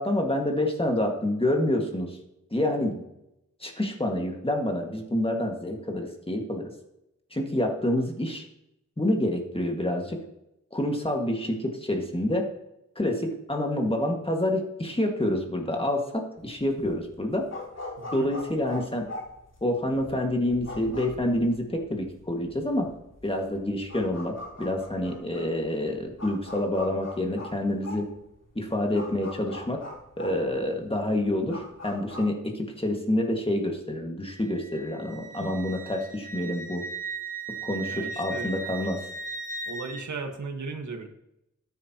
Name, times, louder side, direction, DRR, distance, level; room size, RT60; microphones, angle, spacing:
voice 1, 0.0-2.2 2.5-3.0 3.6-6.7 7.3-8.5 9.0-10.2 10.7-12.5 13.0-17.5 18.1-19.1 19.6-22.9 23.2-28.1 28.6-29.8 30.2-36.8 37.6-39.0, left 1 dB, 20° left, 2 dB, 1.9 m, -27 dB
sound 1, 16.4-32.3, left 2 dB, 55° left, 3.6 m, -42 dB
voice 2, 18.0-18.3 37.9-38.5 39.7-41.1, right 4 dB, 70° right, 4 dB, 1.5 m, -36 dB
Wind instrument woodwind instrument, 34.3-40.1, right 4 dB, 25° right, 1.2 m, -37 dB
13.0 x 9.7 x 2.9 m, 0.85 s
wide cardioid pair, 80°, 30 cm